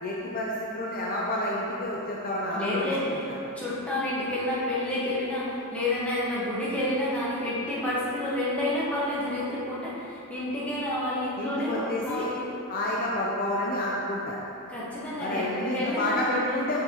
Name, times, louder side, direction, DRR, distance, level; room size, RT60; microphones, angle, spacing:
voice 1, 0.0-2.8 3.1-3.2 11.4-12.3 12.7-14.4 15.2-16.8, left 1 dB, 40° left, -3 dB, 0.5 m, -29 dB
voice 2, 2.5-12.5 14.7-16.7, left 1 dB, 5° left, -9 dB, 1.2 m, -29 dB
6.8 x 5.8 x 2.9 m, 2.8 s
head